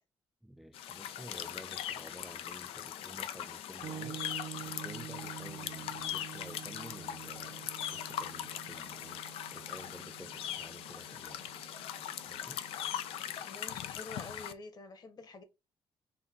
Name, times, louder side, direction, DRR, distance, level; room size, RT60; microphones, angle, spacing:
voice 1, 0.4-4.3 4.6-9.2 9.5-11.5 12.3-12.6, equal, ahead, 0.4 m, -52 dB
sound 1, 0.7-14.5, left 10 dB, 90° left, 0.5 m, -40 dB
sound 2, 3.8-13.5, right 10 dB, 60° right, 0.5 m, -48 dB
voice 2, 12.0-12.3 13.4-15.4, left 3 dB, 45° left, 1.2 m, -49 dB
4.0 x 2.9 x 3.7 m
cardioid pair, 85°, 9 cm